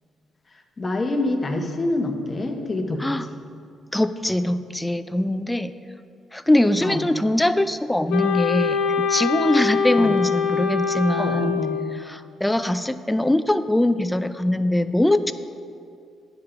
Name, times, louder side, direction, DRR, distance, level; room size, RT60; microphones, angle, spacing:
voice 1, 0.8-3.3 6.8-7.0 10.0-10.2 11.2-11.8, left 2 dB, 30° left, 3 dB, 1.0 m, -26 dB
voice 2, 3.9-5.7 6.3-11.6 12.0-15.3, left 1 dB, 10° left, 12 dB, 0.4 m, -22 dB
Wind instrument woodwind instrument, 8.1-12.1, left 6 dB, 85° left, 0.5 m, -24 dB
9.6 x 5.1 x 5.7 m, 2.4 s
cardioid pair, 90°, 0 cm